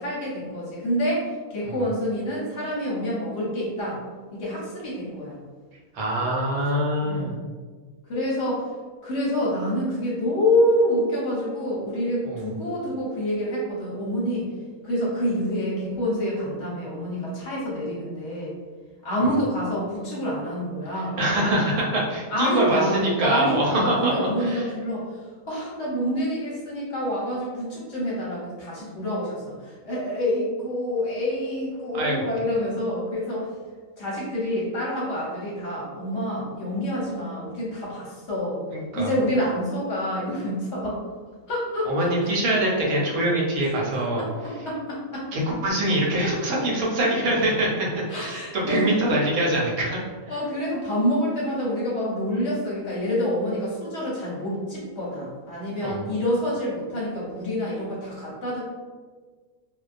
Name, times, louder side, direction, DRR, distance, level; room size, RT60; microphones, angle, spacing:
voice 1, 0.0-4.0 4.3-5.4 7.0-7.4 8.1-8.6 9.0-14.5 14.8-18.5 19.0-21.2 22.3-33.5 34.0-38.6 38.9-41.0 41.5-42.1 43.9-45.3 46.2-46.3 48.1-48.9 50.3-58.6, equal, 60° left, -6 dB, 0.8 m, -27 dB
voice 2, 5.9-7.3 12.2-12.5 19.2-19.3 21.2-24.6 31.9-32.2 38.7-39.1 41.8-44.2 45.3-50.0 55.8-56.0, right 1 dB, 80° right, -3 dB, 1.1 m, -24 dB
2.3 x 2.2 x 2.4 m, 1.5 s
omnidirectional pair, 1.5 m